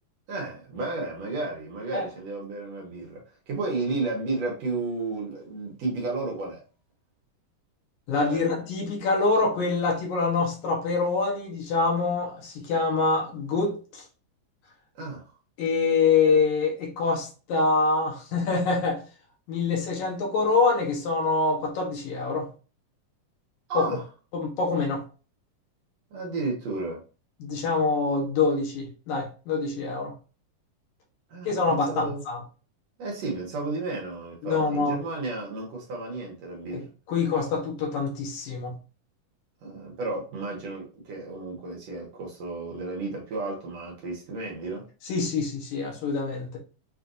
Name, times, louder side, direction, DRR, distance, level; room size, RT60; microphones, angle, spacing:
voice 1, 0.3-3.2 3.5-6.6 8.3-8.5 15.0-15.3 23.7-24.0 26.1-27.0 31.3-32.2 33.0-36.8 39.6-44.9, right 3 dB, 65° right, 2.0 m, -32 dB
voice 2, 8.1-14.0 15.6-19.0 19.5-22.5 23.7-23.9 24.3-25.0 27.4-30.1 31.4-32.4 34.4-35.0 36.7-38.8 45.0-46.6, left 4 dB, 70° left, 2.2 m, -25 dB
5.9 x 2.5 x 2.6 m
omnidirectional pair, 3.7 m